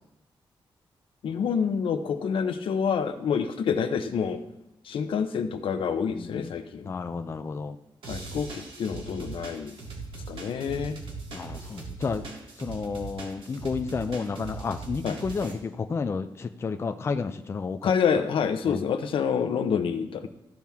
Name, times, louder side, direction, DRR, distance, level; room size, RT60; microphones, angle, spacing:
voice 1, 1.2-4.4 4.9-6.9 8.1-9.8 10.3-11.0 15.0-15.1 17.8-20.3, left 6 dB, 75° left, 8 dB, 0.8 m, -27 dB
voice 2, 6.1-6.6 6.8-7.8 11.3-12.2 12.6-17.9 18.7-18.8, left 5 dB, 30° left, 8 dB, 0.4 m, -31 dB
sound 1, 8.0-15.5, right 3 dB, 75° right, 2.0 m, -40 dB
14.5 x 5.9 x 3.6 m, 0.88 s
wide cardioid pair, 160°, 9 cm